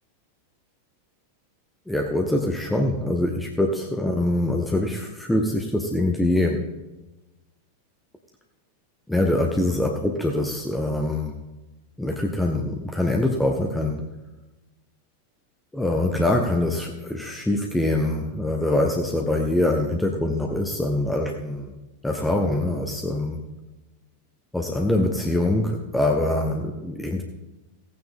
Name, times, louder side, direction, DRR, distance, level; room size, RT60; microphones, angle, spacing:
voice 1, 1.9-6.7 9.1-11.3 12.0-14.1 15.7-21.7 22.0-23.4 24.5-27.2, left 1 dB, 5° left, 2 dB, 1.0 m, -24 dB
16.5 x 8.9 x 3.7 m, 1.1 s
figure-of-eight pair, 90°, 0 cm